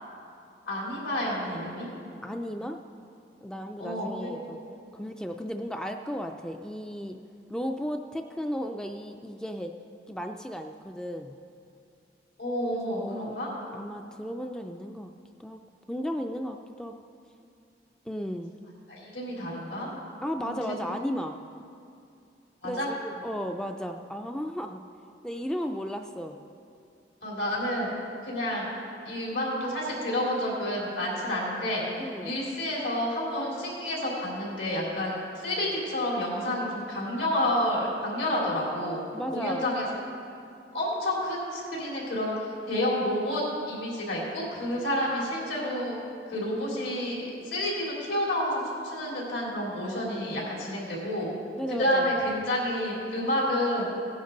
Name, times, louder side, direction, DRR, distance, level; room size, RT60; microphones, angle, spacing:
voice 1, 0.7-1.9 3.8-4.6 12.4-13.5 18.9-19.9 20.4-20.6 22.6-22.9 27.2-27.9 28.2-28.7 29.0-39.0 39.3-40.0 40.7-45.9 46.3-51.3 51.7-53.9, left 1 dB, 75° left, -4 dB, 3.6 m, -29 dB
voice 2, 2.2-2.8 3.4-4.6 4.9-7.2 7.5-9.7 10.1-11.3 12.7-13.3 13.7-15.1 15.4-15.6 15.9-16.9 18.1-18.5 20.2-21.6 22.6-24.8 25.2-26.4 32.0-32.4 39.1-39.7 51.5-52.1, equal, 5° left, 5 dB, 0.3 m, -35 dB
17.0 x 10.5 x 3.9 m, 2.5 s
head